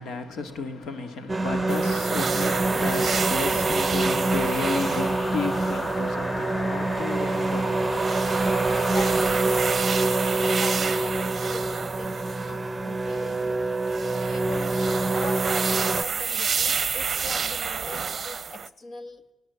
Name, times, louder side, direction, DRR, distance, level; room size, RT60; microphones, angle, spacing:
voice 1, 0.0-8.9, left 4 dB, 70° left, 2.2 m, -34 dB
sound 1, 1.3-12.7, left 1 dB, 25° left, 1.4 m, -36 dB
sound 2, 1.3-16.0, right 2 dB, 15° right, 1.0 m, -26 dB
sound 3, 1.7-6.0 7.1-12.5 13.1-13.4 13.8-18.7, right 6 dB, 40° right, 0.7 m, -30 dB
voice 2, 8.9-13.6 14.3-19.2, left 2 dB, 50° left, 2.1 m, -41 dB
27.5 x 17.5 x 8.3 m
cardioid pair, 90°, 0 cm